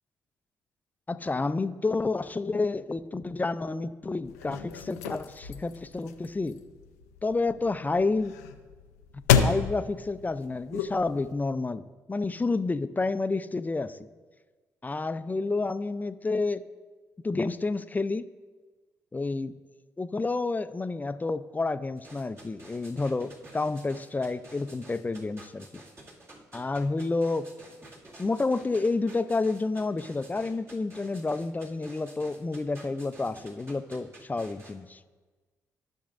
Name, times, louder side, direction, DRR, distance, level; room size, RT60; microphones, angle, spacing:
voice 1, 1.1-6.6 7.2-8.4 9.4-14.0 14.8-16.6 17.2-18.3 19.1-19.5 20.0-25.8 26.5-27.5 28.2-35.0, left 3 dB, 20° left, 13 dB, 0.4 m, -29 dB
sound 1, 4.2-11.3, left 7 dB, 85° left, 0.4 m, -31 dB
sound 2, 22.0-34.7, right 1 dB, 35° right, 2.2 m, -50 dB
13.0 x 6.1 x 2.5 m, 1.3 s
hypercardioid pair, 40°, 8 cm